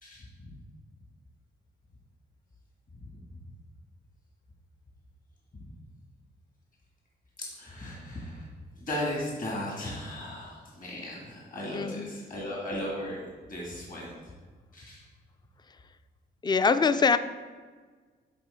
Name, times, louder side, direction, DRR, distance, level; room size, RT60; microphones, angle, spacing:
voice 1, 0.0-0.5 3.0-3.1 7.4-8.4 8.8-13.2 13.5-14.1 14.7-15.0, left 1 dB, 40° left, -4 dB, 1.7 m, -36 dB
voice 2, 11.7-12.1 16.4-17.2, left 5 dB, 20° left, 12 dB, 0.4 m, -23 dB
8.5 x 3.7 x 3.4 m, 1.5 s
supercardioid pair, 60°, 20 cm